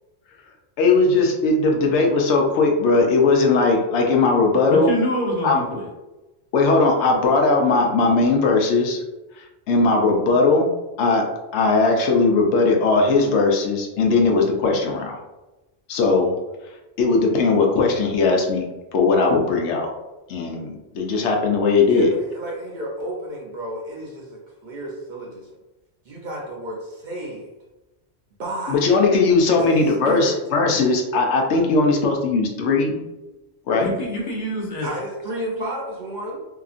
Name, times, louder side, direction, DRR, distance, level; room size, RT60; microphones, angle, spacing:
voice 1, 0.8-4.9 5.4-5.6 6.5-9.0 9.4-10.7 11.0-11.3 11.5-15.2 15.9-16.3 17.0-19.9 20.3-22.1 28.7-33.1 33.7-33.9, left 3 dB, 90° left, 1 dB, 0.9 m, -19 dB
voice 2, 4.7-5.9 33.8-34.9 35.6-35.7, equal, 50° left, -3 dB, 0.9 m, -26 dB
voice 3, 21.9-25.6 26.1-27.5 28.4-28.9 29.6-29.7 30.0-30.4 34.8-36.4, right 1 dB, 55° right, -3 dB, 0.6 m, -31 dB
2.7 x 2.4 x 2.4 m, 1.0 s
omnidirectional pair, 1.1 m